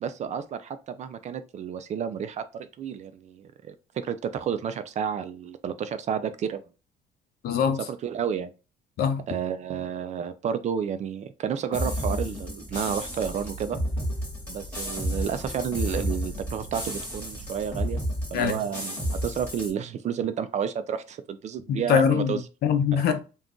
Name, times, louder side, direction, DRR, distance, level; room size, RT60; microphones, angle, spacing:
voice 1, 0.0-6.6 8.0-8.5 9.3-13.8 14.5-18.0 18.3-22.4 22.9-23.0, right 8 dB, 45° right, 0.4 m, -31 dB
voice 2, 7.4-7.8 9.0-9.2 18.3-18.6 21.7-23.2, left 7 dB, 70° left, 0.6 m, -23 dB
sound 1, 11.7-19.7, equal, 10° left, 1.3 m, -32 dB
sound 2, 12.6-17.8, right 2 dB, 15° right, 1.1 m, -43 dB
2.5 x 2.3 x 3.6 m
cardioid pair, 110°, 17 cm